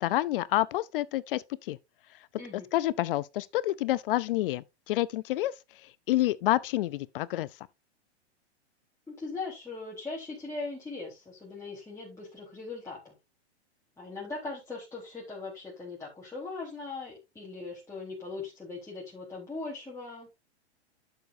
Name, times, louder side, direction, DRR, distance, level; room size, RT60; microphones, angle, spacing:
voice 1, 0.0-1.8 2.7-5.5 6.1-7.5, left 16 dB, 55° left, 0.6 m, -28 dB
voice 2, 9.1-13.1 14.0-20.3, left 3 dB, 10° left, 4.0 m, -40 dB
11.5 x 7.1 x 2.7 m
hypercardioid pair, 115°, 34 cm